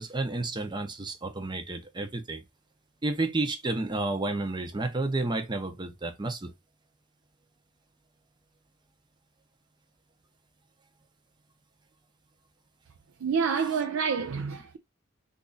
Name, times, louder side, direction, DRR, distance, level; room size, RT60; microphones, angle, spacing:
voice 1, 0.0-2.4 3.0-6.5, right 2 dB, 20° right, 0.6 m, -31 dB
voice 2, 13.2-14.8, right 6 dB, 75° right, 0.4 m, -28 dB
2.9 x 2.5 x 3.9 m
head